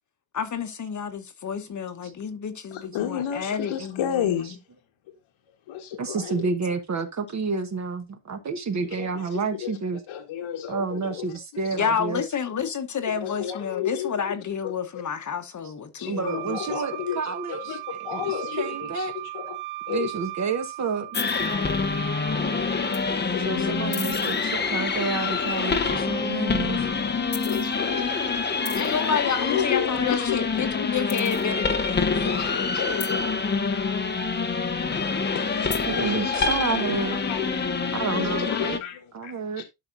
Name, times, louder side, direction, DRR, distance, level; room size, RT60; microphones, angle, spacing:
voice 1, 0.3-4.4 11.7-16.8 28.8-32.1, left 7 dB, 35° left, 1.1 m, -29 dB
voice 2, 2.7-4.6 5.7-6.5 8.9-9.7 10.1-11.3 13.2-14.1 14.6-14.7 16.0-17.8 18.0-19.1 19.3-19.6 19.9-20.1 23.3-24.0 27.4-28.1 29.4-30.6 32.2-33.3 34.4-35.0 35.3-36.6 37.3-39.6, left 10 dB, 75° left, 1.5 m, -32 dB
voice 3, 6.0-10.0 10.7-12.2 16.1-19.1 19.9-21.1 23.4-26.9 35.9-37.2 37.9-38.8 39.1-39.6, right 4 dB, 35° right, 1.3 m, -30 dB
Wind instrument woodwind instrument, 16.3-23.0, right 17 dB, 85° right, 0.8 m, -37 dB
sound 1, 21.1-38.8, left 4 dB, 20° left, 0.8 m, -26 dB
11.5 x 5.8 x 2.6 m
cardioid pair, 155°, 48 cm